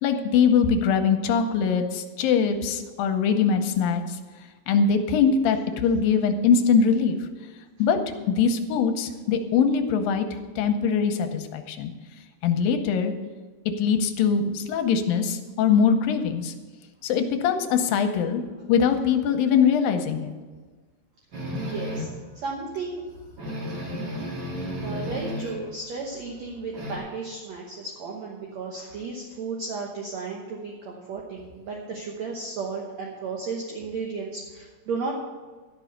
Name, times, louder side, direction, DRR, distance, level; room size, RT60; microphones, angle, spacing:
voice 1, 0.0-4.2 4.7-7.2 7.8-8.0 8.3-10.3 10.6-11.9 12.4-13.1 13.8-16.5 17.0-18.4 18.7-20.3, left 6 dB, 85° left, 7 dB, 2.6 m, -22 dB
sound 1, 21.3-22.2 22.7-22.8 23.1-23.2 23.4-25.7 26.0-27.0, equal, 40° right, 1.6 m, -33 dB
voice 2, 21.6-22.1 22.4-23.0 24.8-35.1, right 4 dB, 65° right, -1 dB, 2.0 m, -34 dB
12.0 x 6.1 x 7.9 m, 1.4 s
omnidirectional pair, 4.1 m